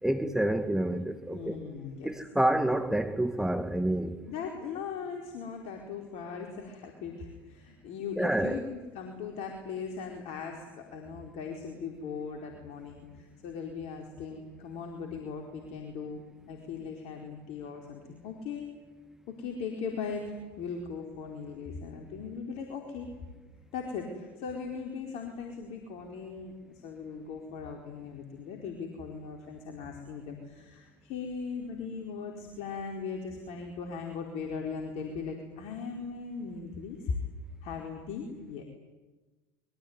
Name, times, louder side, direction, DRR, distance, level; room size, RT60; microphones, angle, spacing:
voice 1, 0.0-1.6 2.0-4.2 8.2-8.7, right 1 dB, 5° right, 2.0 m, -28 dB
voice 2, 1.3-2.1 4.3-16.2 16.5-18.7 19.3-23.1 23.7-26.5 26.8-37.2 37.6-38.6, left 5 dB, 55° left, 4.4 m, -39 dB
26.5 x 23.0 x 9.6 m
hypercardioid pair, 80°, 13 cm